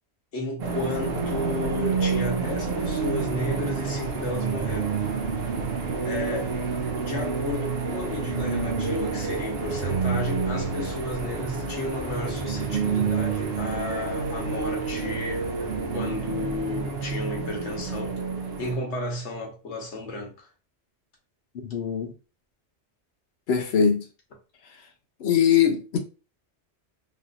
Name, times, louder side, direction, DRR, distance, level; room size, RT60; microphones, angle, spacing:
voice 1, 0.3-5.2 6.0-6.5 7.0-18.2 18.6-20.5, left 1 dB, 85° left, 1.3 m, -33 dB
sound 1, 0.6-18.7, right 5 dB, 65° right, 0.8 m, -28 dB
voice 2, 21.6-22.1 23.5-24.1 25.2-26.0, left 7 dB, 70° left, 0.9 m, -22 dB
3.1 x 2.6 x 2.4 m
omnidirectional pair, 1.1 m